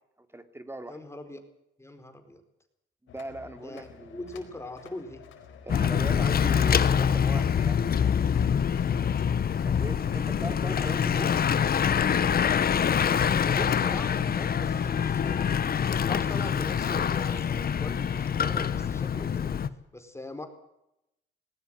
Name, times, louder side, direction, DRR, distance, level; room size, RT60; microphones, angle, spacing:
voice 1, 0.2-1.0 3.0-4.2 5.6-7.8 9.6-11.3, right 1 dB, 10° right, 8 dB, 2.9 m, -39 dB
voice 2, 0.9-1.4 1.8-2.4 3.6-5.2 13.2-15.5 15.9-19.5 19.9-20.5, left 1 dB, 15° left, 7 dB, 4.6 m, -41 dB
sound 1, 3.1-19.1, left 7 dB, 85° left, 4.6 m, -50 dB
Bicycle / Mechanisms, 5.7-19.7, left 7 dB, 50° left, 1.2 m, -25 dB
19.0 x 18.0 x 7.9 m, 0.83 s
cardioid pair, 90°, 20 cm